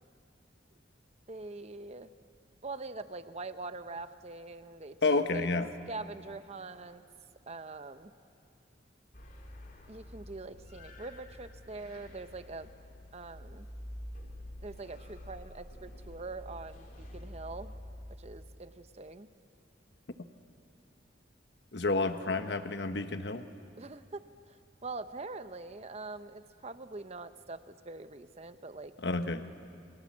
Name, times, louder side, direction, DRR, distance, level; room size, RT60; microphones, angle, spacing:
voice 1, 1.3-2.1 2.6-5.5 5.9-7.0 7.5-8.1 9.9-12.7 13.1-13.7 14.6-17.7 18.2-19.3 23.8-24.6 24.8-28.9, right 3 dB, 35° right, 11 dB, 0.9 m, -43 dB
voice 2, 5.0-5.7 21.7-23.4 29.0-29.4, left 3 dB, 65° left, 8 dB, 1.1 m, -30 dB
sound 1, 9.1-18.2, left 1 dB, 50° left, 3.0 m, -48 dB
29.0 x 23.5 x 7.4 m, 2.5 s
head